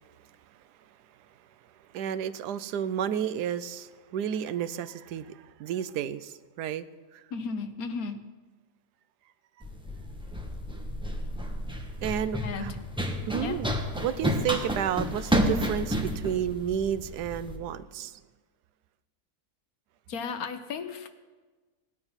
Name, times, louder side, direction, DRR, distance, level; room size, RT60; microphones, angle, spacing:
voice 1, 1.9-6.8 7.1-7.2 12.0-12.7 13.3-13.7 14.0-18.2, right 9 dB, 85° right, 13 dB, 1.2 m, -31 dB
voice 2, 7.3-8.2 12.4-12.8 13.4-13.6 20.1-21.1, left 5 dB, 65° left, 9 dB, 1.3 m, -34 dB
Run, 9.6-17.6, equal, 5° right, 1.1 m, -31 dB
18.0 x 9.9 x 5.6 m, 1.3 s
omnidirectional pair, 1.7 m